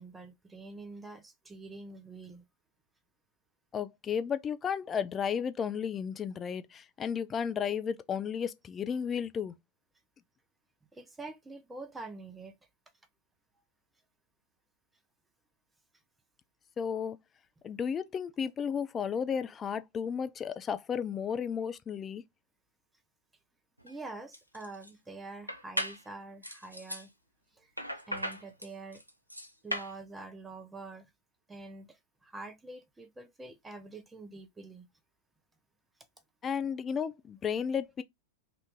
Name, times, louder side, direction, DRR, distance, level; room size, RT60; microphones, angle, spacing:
voice 1, 0.0-2.4 10.9-12.6 23.8-27.1 27.5-27.7 28.1-29.0 29.6-31.1 31.5-34.9, right 3 dB, 10° right, 0.7 m, -46 dB
voice 2, 3.7-9.5 16.8-17.2 17.6-22.2 36.4-38.0, left 7 dB, 25° left, 0.4 m, -33 dB
sound 1, 23.8-23.9 24.3-24.9 25.5-26.0 26.4-27.1 27.8-29.9, equal, 90° right, 0.4 m, -37 dB
2.7 x 2.5 x 3.5 m
figure-of-eight pair, 90°, 0 cm